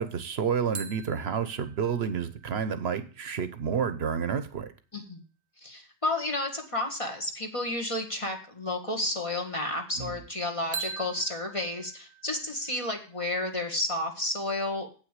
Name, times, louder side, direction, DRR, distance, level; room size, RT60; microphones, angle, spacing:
voice 1, 0.0-4.7 10.0-10.1, right 7 dB, 70° right, 11 dB, 1.1 m, -30 dB
sound 1, 0.7-4.3 10.7-13.5, right 5 dB, 45° right, 0.9 m, -43 dB
voice 2, 5.6-14.9, left 1 dB, 30° left, 3 dB, 1.7 m, -31 dB
8.4 x 6.0 x 8.1 m, 0.37 s
omnidirectional pair, 1.1 m